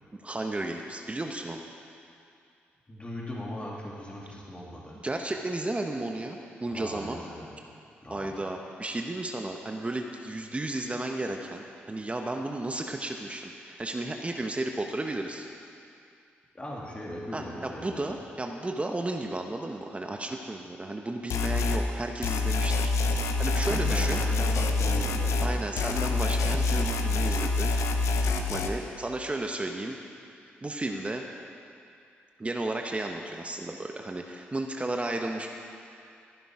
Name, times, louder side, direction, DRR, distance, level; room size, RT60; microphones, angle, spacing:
voice 1, 0.1-1.7 5.0-7.2 8.1-15.5 17.3-22.9 23.4-24.2 25.4-27.7 28.5-30.0 30.6-31.2 32.4-35.5, right 2 dB, 25° right, 3 dB, 1.1 m, -33 dB
voice 2, 2.9-5.0 6.7-7.5 8.0-8.5 16.5-18.0 23.5-26.0, left 1 dB, 25° left, -4 dB, 3.1 m, -39 dB
sound 1, 21.3-21.8 22.2-25.5 25.8-28.7, left 3 dB, 75° left, 0.9 m, -26 dB
15.0 x 11.0 x 4.9 m, 2.5 s
supercardioid pair, 50°, 5 cm